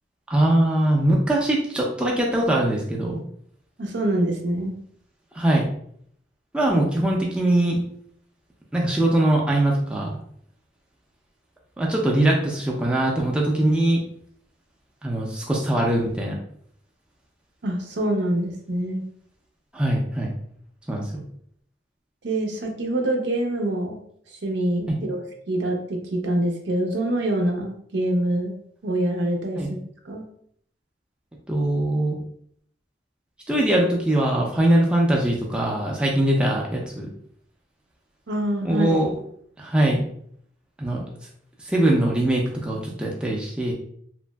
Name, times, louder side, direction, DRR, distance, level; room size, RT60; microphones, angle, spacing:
voice 1, 0.3-3.2 5.3-5.7 6.5-7.8 8.7-10.2 11.8-14.0 15.0-16.4 19.7-20.3 20.9-21.2 24.9-25.0 29.6-29.7 31.5-32.2 33.5-37.1 38.6-39.1 39.6-40.0 40.8-41.0 41.6-43.7, right 1 dB, 5° right, -2 dB, 0.4 m, -22 dB
voice 2, 3.8-4.7 17.6-19.0 22.2-24.0 24.3-28.5 28.8-29.6 30.0-30.2 38.3-39.0, right 1 dB, 80° right, 2 dB, 0.6 m, -25 dB
3.0 x 2.5 x 2.2 m, 0.65 s
head